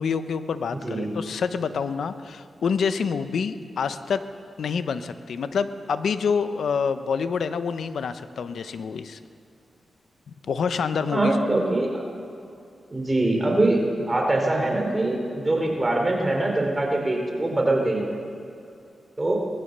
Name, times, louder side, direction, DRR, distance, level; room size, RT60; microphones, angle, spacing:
voice 1, 0.0-4.2 4.6-9.2 10.4-11.3, left 6 dB, 80° left, 11 dB, 1.0 m, -27 dB
voice 2, 11.1-12.0 12.9-18.0 19.2-19.4, right 2 dB, 25° right, 1 dB, 4.2 m, -23 dB
23.0 x 20.0 x 6.8 m, 2.5 s
cardioid pair, 75°, 0 cm